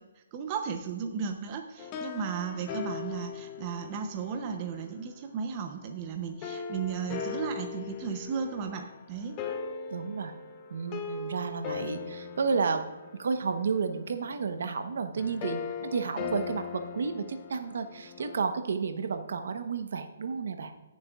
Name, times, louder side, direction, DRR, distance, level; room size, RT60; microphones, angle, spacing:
voice 1, 0.3-9.4, right 6 dB, 25° right, 5 dB, 0.7 m, -35 dB
sound 1, 1.8-5.1 6.4-18.4, left 6 dB, 20° left, 0.6 m, -40 dB
voice 2, 9.9-10.3 10.7-12.8 13.1-20.7, right 5 dB, 65° right, 8 dB, 1.0 m, -31 dB
18.5 x 7.0 x 2.4 m, 1.1 s
hypercardioid pair, 165°, 0 cm